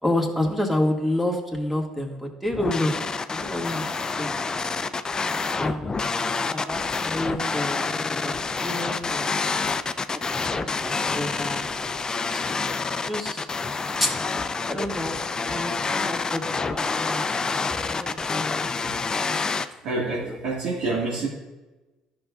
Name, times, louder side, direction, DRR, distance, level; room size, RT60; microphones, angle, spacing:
voice 1, 0.0-3.9 4.2-4.3 5.6-5.9 6.5-7.9 8.2-8.4 8.6-9.4 10.5-11.9 12.3-12.6 12.9-13.5 14.0-14.1 14.7-15.2 15.5-17.3 17.9-18.5 18.8-18.9 20.2-20.4, left 1 dB, 5° right, 1 dB, 1.9 m, -29 dB
sound 1, 2.5-19.7, left 4 dB, 30° left, 0.5 m, -27 dB
voice 2, 19.8-21.3, right 3 dB, 70° right, -4 dB, 1.8 m, -27 dB
13.0 x 5.9 x 2.4 m, 1.1 s
hypercardioid pair, 60°, 2 cm